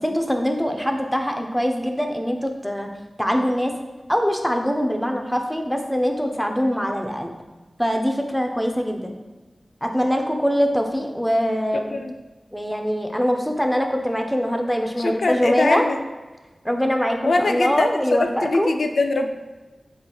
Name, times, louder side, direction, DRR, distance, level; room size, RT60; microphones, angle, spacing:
voice 1, 0.0-2.9 3.2-3.7 4.1-7.3 7.8-9.1 9.8-11.9 12.5-15.9 16.6-18.7, equal, ahead, 3 dB, 0.5 m, -23 dB
voice 2, 11.7-12.1 15.0-16.0 17.2-19.3, left 3 dB, 80° left, 5 dB, 0.3 m, -22 dB
7.8 x 2.9 x 2.3 m, 1.2 s
wide cardioid pair, 100°, 0 cm